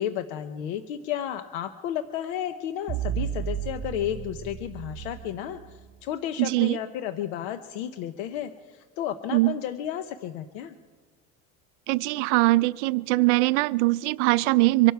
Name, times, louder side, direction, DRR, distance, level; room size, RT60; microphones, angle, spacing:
voice 1, 0.0-10.7, left 10 dB, 75° left, 9 dB, 0.9 m, -32 dB
sound 1, 2.9-6.0, right 10 dB, 30° right, 1.2 m, -33 dB
voice 2, 6.4-6.8 9.3-9.6 11.9-14.9, right 21 dB, 80° right, 16 dB, 0.6 m, -22 dB
24.5 x 12.0 x 4.6 m, 1.4 s
cardioid pair, 170°, 34 cm